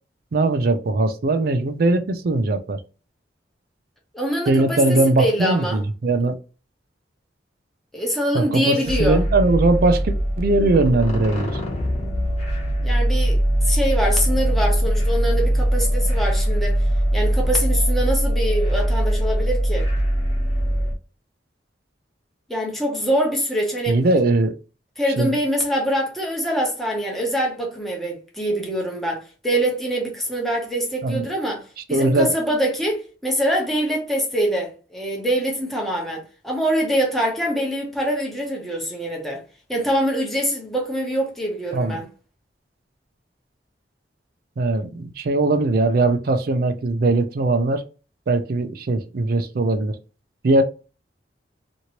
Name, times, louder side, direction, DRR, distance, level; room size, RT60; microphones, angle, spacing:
voice 1, 0.3-2.8 4.5-6.4 8.3-11.5 23.9-24.5 25.2-25.3 31.0-31.3 31.9-32.3 41.7-42.0 44.6-47.8 48.3-49.9 50.4-50.6, right 2 dB, 55° right, 0.4 m, -20 dB
voice 2, 4.1-5.8 7.9-9.2 12.8-16.8 17.1-19.9 22.5-24.0 25.0-31.6 31.9-39.4 39.7-42.1, equal, ahead, 0.8 m, -24 dB
sound 1, 8.8-20.9, equal, 40° left, 1.0 m, -21 dB
2.9 x 2.6 x 2.9 m
head